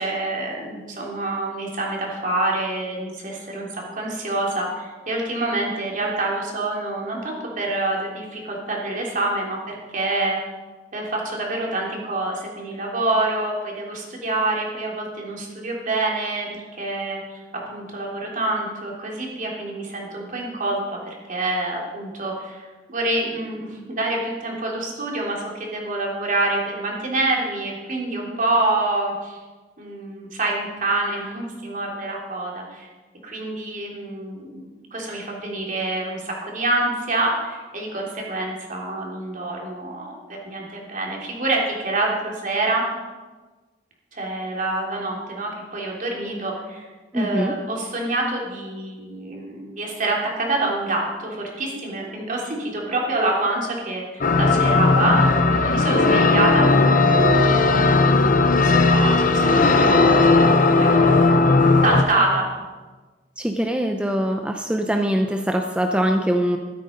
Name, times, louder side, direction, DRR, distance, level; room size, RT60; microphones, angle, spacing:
voice 1, 0.0-10.4 10.9-20.8 21.1-29.4 29.8-32.9 33.2-34.6 34.9-40.2 40.4-42.8 44.1-46.9 47.1-55.2 55.5-57.6 58.2-61.3 61.8-62.5, right 2 dB, 50° right, -2 dB, 3.4 m, -26 dB
voice 2, 47.1-47.5 63.4-66.6, equal, 5° right, 4 dB, 0.6 m, -22 dB
sound 1, 54.2-62.0, left 3 dB, 50° left, 0.9 m, -16 dB
13.0 x 12.5 x 5.3 m, 1.3 s
head